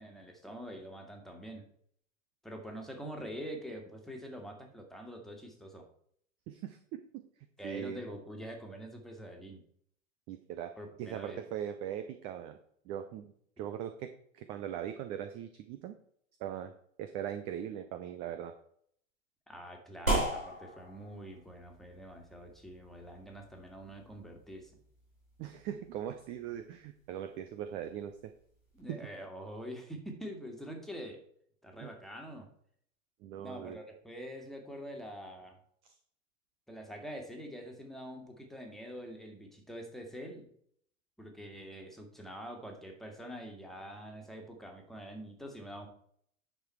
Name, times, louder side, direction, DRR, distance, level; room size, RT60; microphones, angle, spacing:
voice 1, 0.0-1.6 2.4-5.9 7.6-9.6 10.8-11.4 19.5-24.7 28.7-31.2 31.6-32.5 33.4-35.6 36.7-40.5 41.2-45.9, equal, ahead, 2 dB, 1.9 m, -45 dB
voice 2, 6.5-7.2 7.6-8.0 10.3-10.7 11.0-12.6 12.9-16.0 16.4-16.7 17.0-18.5 25.4-28.3 28.9-29.0 31.8-31.9 33.2-33.8 35.8-35.9, right 10 dB, 15° right, 9 dB, 0.3 m, -40 dB
sound 1, 20.1-28.8, right 1 dB, 85° right, 3.8 m, -40 dB
9.6 x 6.4 x 4.5 m, 0.64 s
figure-of-eight pair, 90°, 40 cm